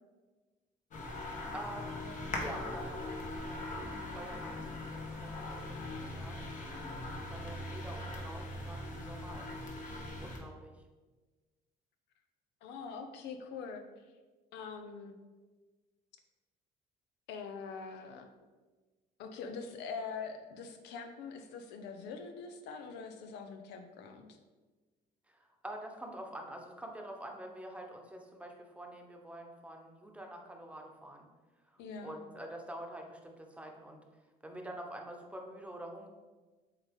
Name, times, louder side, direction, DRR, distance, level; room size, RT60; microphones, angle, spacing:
sound 1, 0.9-10.4, left 2 dB, 50° left, 1.3 m, -41 dB
voice 1, 1.1-6.8 7.3-10.8 25.3-31.3 31.7-34.0 34.4-36.1, right 1 dB, 5° right, 2 dB, 1.0 m, -47 dB
voice 2, 12.6-13.8 14.5-15.1 17.3-18.3 19.2-24.4 31.8-32.2, left 5 dB, 90° left, 6 dB, 0.7 m, -43 dB
7.8 x 3.7 x 3.6 m, 1.3 s
cardioid pair, 110°, 17 cm